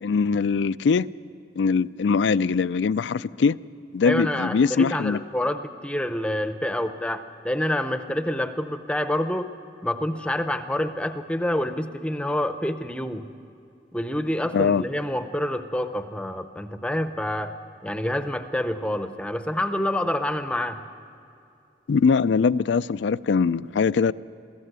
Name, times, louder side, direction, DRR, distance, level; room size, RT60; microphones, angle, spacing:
voice 1, 0.0-1.1 1.6-3.6 3.9-5.2 14.5-14.9 21.9-24.1, left 5 dB, 90° left, 16 dB, 0.4 m, -22 dB
voice 2, 4.1-9.5 9.8-13.3 13.9-17.5 17.8-20.8, left 1 dB, 5° left, 9 dB, 0.6 m, -27 dB
22.5 x 15.0 x 8.1 m, 2.6 s
head